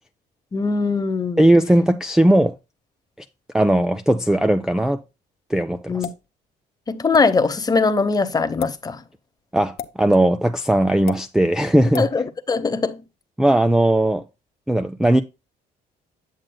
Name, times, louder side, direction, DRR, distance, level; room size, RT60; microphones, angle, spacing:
voice 1, 0.5-1.5 5.9-6.1 6.9-9.0 12.0-13.0, left 4 dB, 20° left, 0.9 m, -21 dB
voice 2, 1.4-2.5 3.5-5.0 5.5-6.0 9.5-12.1 13.4-14.2 14.7-15.2, right 1 dB, 5° right, 0.4 m, -18 dB
sound 1, 6.0-6.3 7.1-7.3 8.5-8.7 9.8-10.0 11.1-11.2 11.9-12.1, left 10 dB, 65° left, 1.1 m, -31 dB
9.1 x 7.5 x 2.2 m
cardioid pair, 110°, 17 cm